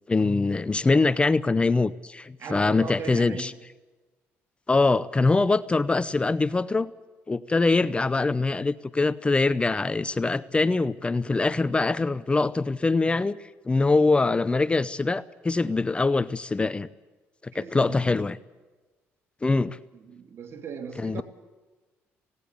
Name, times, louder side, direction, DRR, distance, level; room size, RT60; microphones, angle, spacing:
voice 1, 0.1-3.5 4.7-6.9 7.3-16.9 17.4-18.4 19.4-19.8 21.0-21.2, left 3 dB, 20° left, 17 dB, 0.6 m, -23 dB
voice 2, 2.4-3.5 17.5-18.1 19.9-21.2, right 5 dB, 55° right, 7 dB, 3.2 m, -38 dB
18.5 x 17.5 x 8.3 m, 1.2 s
cardioid pair, 85°, 5 cm